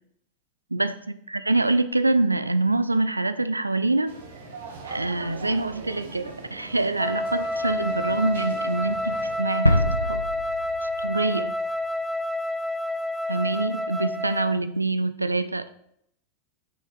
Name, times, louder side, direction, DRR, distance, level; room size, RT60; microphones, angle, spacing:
voice 1, 0.7-4.1 4.8-10.2 10.8-11.6 13.3-15.7, right 2 dB, 85° right, 12 dB, 0.4 m, -25 dB
sound 1, 4.1-9.4, right 3 dB, 65° right, 1.4 m, -41 dB
Wind instrument woodwind instrument, 7.0-14.6, left 1 dB, 5° right, 0.5 m, -29 dB
sound 2, 9.7-11.5 11.8-11.9, equal, 90° left, 0.5 m, -25 dB
6.4 x 5.6 x 4.6 m, 0.73 s
figure-of-eight pair, 90°, 0 cm